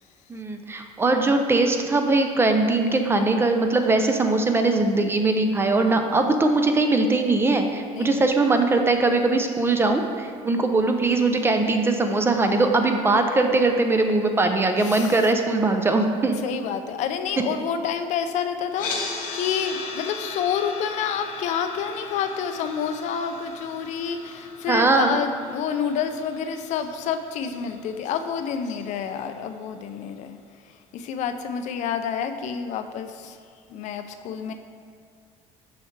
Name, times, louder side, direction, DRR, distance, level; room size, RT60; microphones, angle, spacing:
voice 1, 0.3-16.4 24.7-25.2, right 3 dB, 15° right, 5 dB, 0.4 m, -21 dB
voice 2, 7.9-8.3 14.8-15.1 16.4-30.4 30.9-33.4 33.7-34.5, left 7 dB, 60° left, 8 dB, 0.4 m, -28 dB
sound 1, 18.7-28.8, left 4 dB, 85° left, 1.1 m, -37 dB
6.3 x 6.0 x 3.2 m, 2.2 s
cardioid pair, 135°, 14 cm